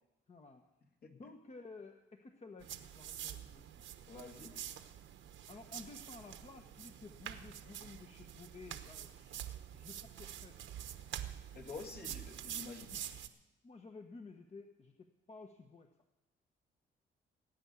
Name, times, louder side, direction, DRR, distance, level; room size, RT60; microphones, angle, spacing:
voice 1, 0.3-0.6 1.1-3.8 5.5-10.6 12.1-12.2 12.9-13.0 13.6-15.9, left 3 dB, 35° left, 5 dB, 1.2 m, -54 dB
sound 1, 2.6-13.3, right 10 dB, 75° right, 1.1 m, -47 dB
voice 2, 4.1-4.6 11.5-13.0, left 4 dB, 50° left, 2 dB, 2.4 m, -48 dB
18.5 x 9.5 x 7.0 m, 0.98 s
cardioid pair, 90°, 20 cm